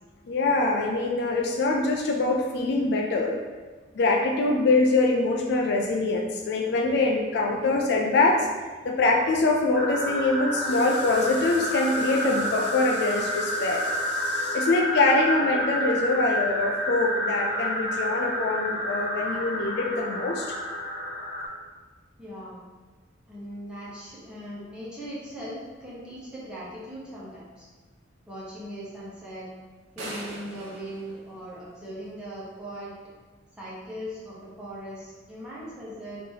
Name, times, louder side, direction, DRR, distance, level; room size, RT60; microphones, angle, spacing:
voice 1, 0.3-3.4 4.0-8.5 8.8-20.5, left 2 dB, 55° left, 1 dB, 0.4 m, -24 dB
sound 1, 9.7-21.5, equal, 80° left, 1.2 m, -29 dB
voice 2, 22.2-22.6 23.3-27.7 28.3-29.5 29.9-32.9 33.6-36.2, equal, 5° right, -9 dB, 1.0 m, -39 dB
sound 2, 30.0-32.1, right 1 dB, 90° right, 0.8 m, -41 dB
3.2 x 2.8 x 3.8 m, 1.4 s
head